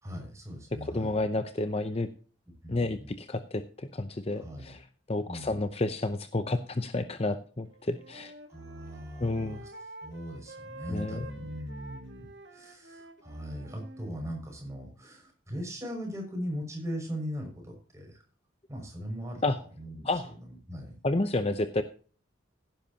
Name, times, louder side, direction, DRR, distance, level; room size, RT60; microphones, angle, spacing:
voice 1, 0.0-1.2 2.6-3.1 4.3-4.8 5.3-5.7 8.5-9.7 10.0-12.3 12.5-18.2 18.7-20.9, equal, 15° right, 1 dB, 6.0 m, -39 dB
voice 2, 0.9-2.1 2.7-4.8 5.1-8.3 9.2-9.6 10.9-11.3 19.4-19.6 20.0-20.3 21.0-21.8, left 2 dB, 30° left, 9 dB, 0.7 m, -30 dB
Wind instrument woodwind instrument, 7.7-14.1, right 2 dB, 65° right, 2.0 m, -48 dB
16.5 x 10.5 x 2.8 m, 0.40 s
head